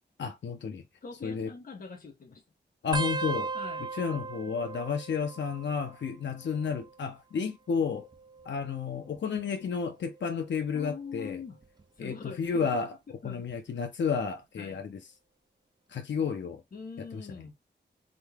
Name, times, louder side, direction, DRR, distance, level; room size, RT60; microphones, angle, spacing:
voice 1, 0.2-0.8 1.2-1.5 2.8-3.5 3.9-8.1 8.5-11.4 12.0-12.9 13.2-15.0 15.9-16.6 17.0-17.2, left 6 dB, 85° left, 0.7 m, -31 dB
voice 2, 1.0-2.4 3.5-3.8 10.7-11.6 12.0-12.8 13.1-13.5 13.7-13.8 14.6-14.9 16.7-17.5, left 5 dB, 50° left, 1.1 m, -43 dB
sound 1, 2.9-6.1 6.4-7.0 8.0-9.5 10.1-10.4 11.6-12.0 13.5-13.6, right 4 dB, 25° right, 0.5 m, -38 dB
3.9 x 3.6 x 3.4 m
wide cardioid pair, 160°, 18 cm